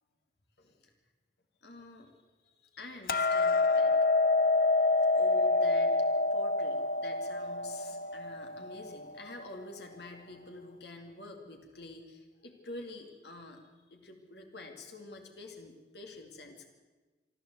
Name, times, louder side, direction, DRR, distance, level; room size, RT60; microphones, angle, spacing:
voice 1, 0.6-0.9 1.6-3.9 5.1-6.0 6.3-13.6 13.9-16.7, left 2 dB, 70° left, 3 dB, 2.2 m, -48 dB
Hammer, 3.1-9.3, left 3 dB, 50° left, 0.8 m, -27 dB
26.5 x 12.5 x 8.0 m, 1.3 s
head